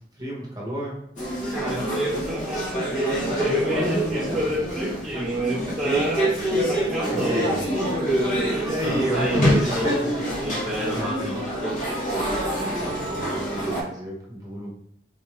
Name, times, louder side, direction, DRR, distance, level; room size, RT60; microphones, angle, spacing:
voice 1, 0.1-1.0 4.2-4.4 5.6-6.7 7.0-7.7 8.2-10.1 10.9-11.4 12.8-14.7, equal, 20° right, -4 dB, 1.0 m, -33 dB
sound 1, 1.2-13.8, right 1 dB, 40° left, 1.0 m, -26 dB
voice 2, 1.5-6.3 6.7-7.5 8.1-10.1 10.4-11.8, equal, 5° right, -9 dB, 1.4 m, -28 dB
4.0 x 2.6 x 3.2 m, 0.74 s
head